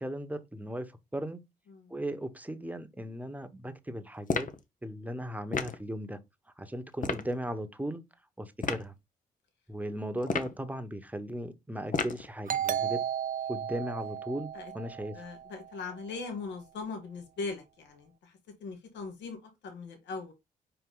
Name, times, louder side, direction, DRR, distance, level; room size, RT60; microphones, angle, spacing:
voice 1, 0.0-1.4 1.9-4.5 4.8-6.2 6.6-8.0 8.4-8.9 9.7-13.0 13.5-15.3, right 1 dB, 10° right, 1.3 m, -37 dB
sound 1, 4.3-4.6 5.5-5.8 7.0-7.3 8.6-8.9 10.2-10.6 11.9-12.3, left 5 dB, 45° left, 1.1 m, -31 dB
Doorbell, 12.5-15.8, right 9 dB, 45° right, 0.6 m, -34 dB
voice 2, 15.1-20.3, left 4 dB, 70° left, 2.1 m, -40 dB
5.0 x 4.7 x 4.0 m
hypercardioid pair, 45°, 19 cm